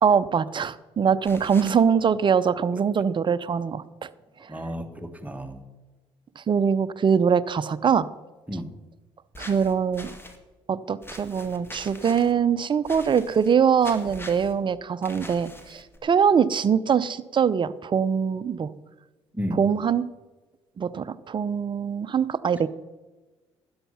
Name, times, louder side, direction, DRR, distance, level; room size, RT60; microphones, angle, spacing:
voice 1, 0.0-4.1 6.4-8.1 9.4-10.1 10.7-18.7 19.6-20.0 20.8-22.7, right 7 dB, 35° right, 16 dB, 0.7 m, -23 dB
sound 1, 1.2-1.8 9.3-10.4 11.0-12.3 12.8-13.5 13.8-14.5 15.0-16.0, left 1 dB, 15° left, 2.3 m, -42 dB
voice 2, 4.5-5.6 8.5-8.7 19.3-19.6, equal, 10° right, 6 dB, 1.7 m, -32 dB
12.5 x 9.6 x 5.7 m, 1.2 s
hypercardioid pair, 55°, 13 cm